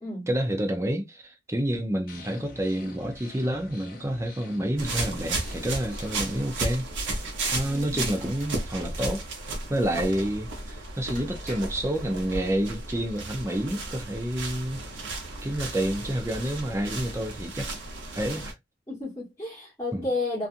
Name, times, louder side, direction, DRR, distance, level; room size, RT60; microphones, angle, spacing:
voice 1, 0.3-6.9 7.5-9.2 9.7-14.8 15.4-17.7 18.2-18.5 19.9-20.1, right 1 dB, 15° right, 0.5 m, -29 dB
sound 1, 2.1-6.5, left 2 dB, 45° left, 0.7 m, -45 dB
sound 2, 4.8-18.5, right 2 dB, 75° right, 0.9 m, -34 dB
voice 2, 7.7-8.1 18.9-20.5, left 2 dB, 15° left, 1.2 m, -32 dB
sound 3, 8.1-8.6 10.7-10.8 11.1-11.9 12.8-13.2, right 2 dB, 45° right, 1.1 m, -47 dB
2.7 x 2.4 x 2.4 m
head